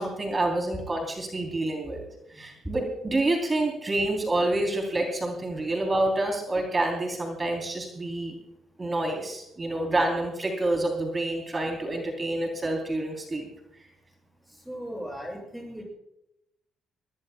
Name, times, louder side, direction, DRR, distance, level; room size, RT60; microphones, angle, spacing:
voice 1, 0.0-2.0 2.3-8.3 8.8-13.5, right 2 dB, 25° right, 2 dB, 3.4 m, -28 dB
voice 2, 14.7-15.8, equal, 5° right, 1 dB, 7.3 m, -37 dB
23.5 x 20.0 x 2.3 m, 0.84 s
cardioid pair, 90°, 0 cm